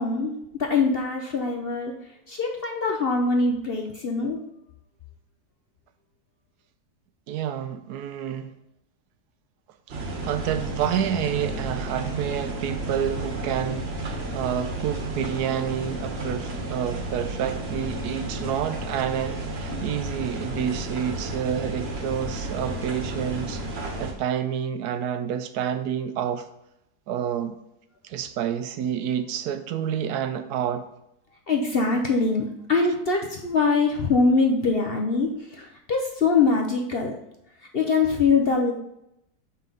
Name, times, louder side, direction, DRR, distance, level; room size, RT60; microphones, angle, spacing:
voice 1, 0.0-1.9 2.3-4.4 31.5-37.1 37.7-38.7, left 4 dB, 50° left, 0.7 m, -23 dB
voice 2, 7.3-8.5 9.9-23.6 24.0-26.5 27.1-27.5 28.0-30.9, right 9 dB, 80° right, 1.1 m, -29 dB
sound 1, 9.9-24.1, right 1 dB, 45° right, 1.3 m, -32 dB
7.0 x 5.6 x 3.9 m
omnidirectional pair, 1.7 m